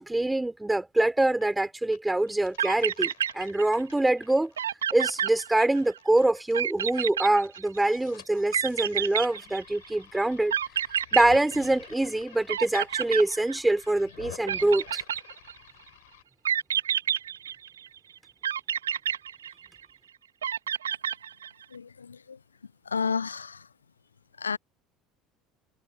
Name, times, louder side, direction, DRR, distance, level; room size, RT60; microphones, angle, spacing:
voice 1, 0.0-4.5 4.9-10.6 11.1-15.0, right 2 dB, 10° right, 5.3 m, -25 dB
sound 1, 1.0-1.6 1.9-7.0 7.3-16.2, left 20 dB, 65° left, 7.7 m, -50 dB
sound 2, 2.3-2.4 2.6-3.9 4.2-4.3 4.6-6.0 6.5-8.0 8.5-9.9 10.5-12.2 12.5-13.9 14.5-15.7 16.5-17.9 18.4-20.0 20.4-21.6, right 9 dB, 75° right, 4.1 m, -29 dB
voice 2, 21.7-22.4 22.8-23.7 24.4-24.6, left 5 dB, 80° left, 1.0 m, -31 dB
figure-of-eight pair, 65°, 0 cm